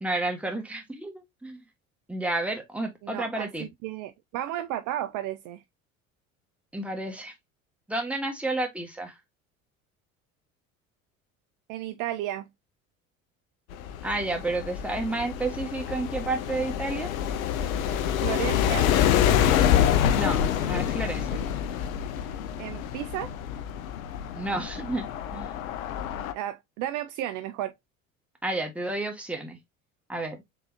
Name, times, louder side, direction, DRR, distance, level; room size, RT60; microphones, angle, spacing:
voice 1, 0.0-1.6 2.1-3.7 6.7-7.3 7.9-9.2 14.0-17.1 20.1-21.4 24.3-25.5 28.4-29.6 30.1-30.4, right 2 dB, 5° right, 1.4 m, -31 dB
voice 2, 3.0-5.6 11.7-12.4 18.2-18.9 22.6-23.3 26.3-27.7, right 13 dB, 50° right, 0.5 m, -33 dB
sound 1, 13.7-26.3, left 10 dB, 80° left, 0.6 m, -26 dB
3.9 x 3.6 x 2.8 m
hypercardioid pair, 65°, 41 cm